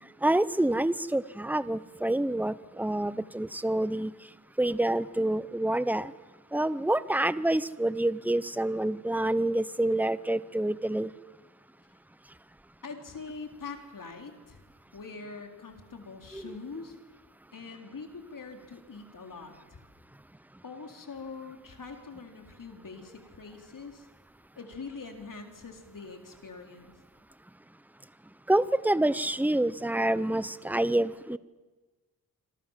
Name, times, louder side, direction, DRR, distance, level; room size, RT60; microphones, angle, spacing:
voice 1, 0.2-4.1 4.6-6.1 6.5-11.1 16.3-16.5 28.5-31.4, right 1 dB, 5° right, 16 dB, 0.9 m, -27 dB
voice 2, 12.8-14.6 14.9-17.0 17.5-19.8 20.6-24.1 24.5-26.9, left 4 dB, 60° left, 4 dB, 4.1 m, -43 dB
27.0 x 26.0 x 7.5 m, 1.3 s
wide cardioid pair, 85°, 36 cm